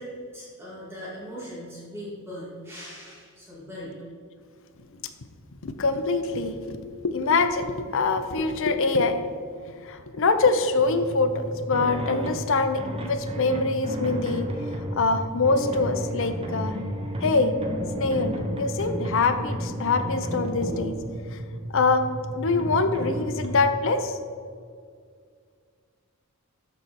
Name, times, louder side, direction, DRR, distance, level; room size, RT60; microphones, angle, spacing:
voice 1, 0.0-3.9, equal, 10° right, -9 dB, 2.2 m, -39 dB
voice 2, 5.6-9.2 9.6-14.5 15.0-16.8 17.2-17.5 18.0-21.0 21.7-22.0 22.3-24.2, left 3 dB, 65° left, 8 dB, 0.7 m, -24 dB
sound 1, 10.8-23.6, right 1 dB, 25° right, 0.9 m, -32 dB
12.5 x 4.6 x 4.2 m, 2.1 s
head